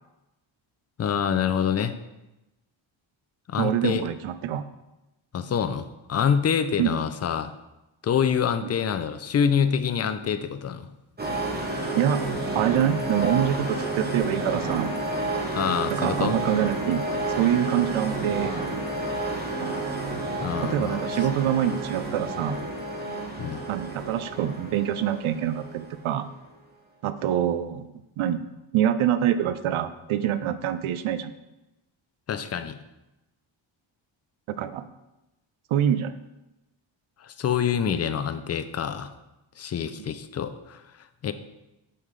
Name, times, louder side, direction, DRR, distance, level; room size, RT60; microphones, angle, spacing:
voice 1, 1.0-1.9 3.5-4.1 5.3-7.5 8.0-10.9 15.5-16.4 20.4-21.0 23.4-23.6 32.3-32.8 37.2-39.1 39.6-40.8 41.2-41.3, left 7 dB, 35° left, 11 dB, 0.4 m, -26 dB
voice 2, 3.6-4.6 6.8-6.9 12.0-12.2 12.5-14.9 15.9-18.6 19.6-19.8 20.6-22.6 23.7-26.3 27.0-27.9 28.2-28.5 28.7-31.3 34.5-34.8 35.7-36.2, right 10 dB, 80° right, 12 dB, 0.6 m, -25 dB
sound 1, 11.2-26.3, right 2 dB, 20° right, 1.0 m, -30 dB
6.6 x 5.5 x 3.2 m, 0.97 s
cardioid pair, 105°, 48 cm